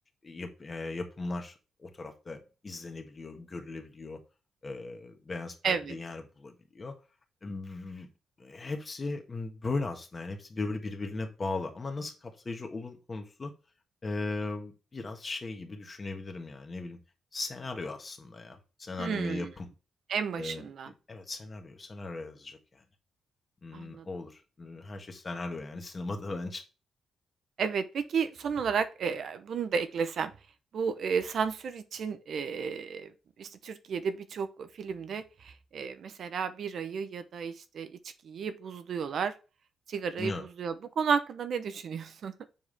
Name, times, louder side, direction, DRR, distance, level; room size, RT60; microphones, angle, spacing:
voice 1, 0.2-1.5 1.8-4.2 4.6-7.0 7.4-8.1 8.4-13.5 14.0-17.0 17.3-19.7 20.4-22.8 23.6-26.6 40.2-40.5, left 3 dB, 30° left, 1.6 m, -38 dB
voice 2, 5.6-6.0 19.0-19.5 20.1-20.9 23.7-24.1 27.6-30.3 30.7-33.1 33.4-38.0 38.2-39.3 39.9-40.3 40.6-42.3, right 6 dB, 60° right, 0.7 m, -32 dB
7.3 x 4.8 x 3.4 m
cardioid pair, 110°, 0 cm